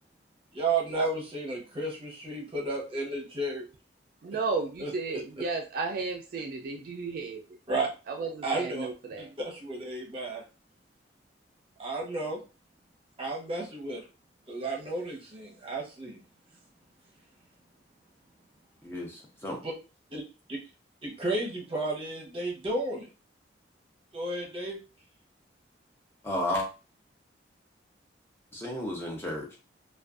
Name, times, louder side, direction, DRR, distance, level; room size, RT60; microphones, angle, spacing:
voice 1, 0.5-3.7 4.8-5.2 7.7-7.9 8.4-8.9 9.2-10.4 11.8-12.4 13.2-14.0 14.5-16.2 19.6-19.7 20.1-20.2 20.5-20.6 21.0-23.1 24.1-24.8, right 2 dB, 30° right, -2 dB, 0.7 m, -32 dB
voice 2, 4.2-7.4 8.1-9.3, right 4 dB, 50° right, 3 dB, 0.3 m, -33 dB
voice 3, 18.8-19.6 26.2-26.7 28.5-29.5, left 1 dB, 15° left, -1 dB, 0.5 m, -32 dB
2.4 x 2.2 x 2.4 m, 0.32 s
head